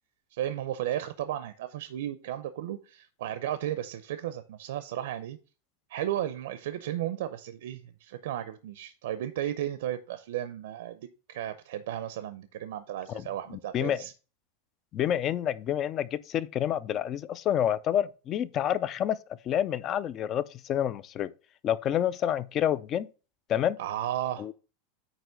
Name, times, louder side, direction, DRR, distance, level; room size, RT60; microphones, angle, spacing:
voice 1, 0.3-5.4 5.9-14.1 23.8-24.5, right 12 dB, 65° right, 0.6 m, -34 dB
voice 2, 14.9-19.2 19.5-21.3 21.6-23.1 23.5-23.8 24.4-24.5, left 10 dB, 25° left, 0.3 m, -28 dB
9.0 x 3.0 x 6.3 m
supercardioid pair, 180°, 0 cm